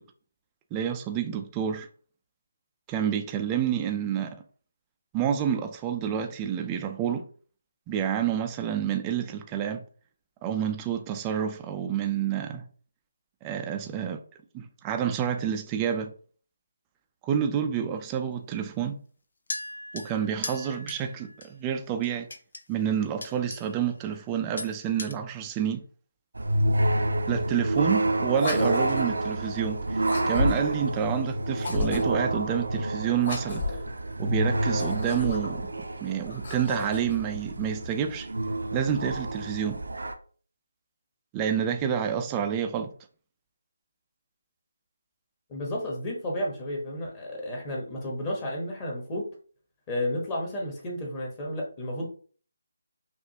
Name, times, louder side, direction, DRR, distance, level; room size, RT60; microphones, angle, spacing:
voice 1, 0.7-1.9 2.9-4.4 5.1-7.3 7.9-9.8 10.4-12.6 13.4-14.2 14.5-16.1 17.2-19.0 19.9-22.3 22.7-25.8 27.3-33.8 34.2-38.3 38.7-39.8 41.3-42.9, right 8 dB, 15° right, 0.3 m, -29 dB
sound 1, 19.5-21.5 22.0-22.6 23.2-23.8 24.1-24.3 24.6-25.1, left 2 dB, 70° left, 0.7 m, -39 dB
sound 2, 26.3-40.1, right 1 dB, 90° right, 0.6 m, -29 dB
sound 3, 28.3-29.2 30.0-30.8 31.5-32.3 33.2-33.9 34.7-35.6 36.3-37.2, left 3 dB, 50° left, 1.5 m, -32 dB
voice 2, 45.5-49.2 49.9-52.1, left 1 dB, 20° left, 1.0 m, -32 dB
5.7 x 2.4 x 2.8 m
figure-of-eight pair, 170°, 0 cm